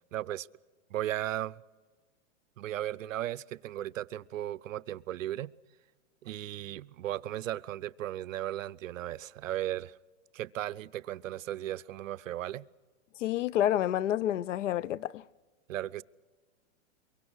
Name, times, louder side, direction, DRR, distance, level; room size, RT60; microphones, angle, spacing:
voice 1, 0.1-0.5 0.9-1.6 2.6-5.5 6.2-10.0 10.3-12.7 15.7-16.0, right 13 dB, 85° right, 0.7 m, -36 dB
voice 2, 13.2-15.2, left 12 dB, 70° left, 0.6 m, -29 dB
23.5 x 23.5 x 6.2 m
hypercardioid pair, 165°, 38 cm